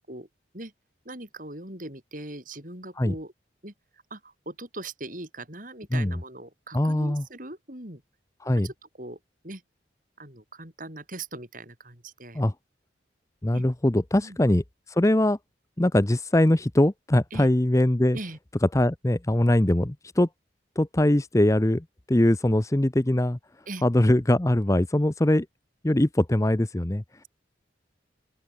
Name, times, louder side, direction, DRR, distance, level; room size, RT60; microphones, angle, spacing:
voice 1, 1.1-3.3 3.6-3.7 4.1-8.0 8.6-9.2 9.4-9.6 10.2-12.4 13.5-13.6 14.2-14.4 17.3-17.5 18.1-18.4 23.7-23.8, right 2 dB, 45° right, 7.4 m, -40 dB
voice 2, 6.7-7.2 8.4-8.7 12.3-12.5 13.4-15.4 15.8-18.2 18.7-20.3 20.8-23.4 23.8-25.5 25.8-27.0, left 1 dB, 15° left, 0.7 m, -22 dB
open air
head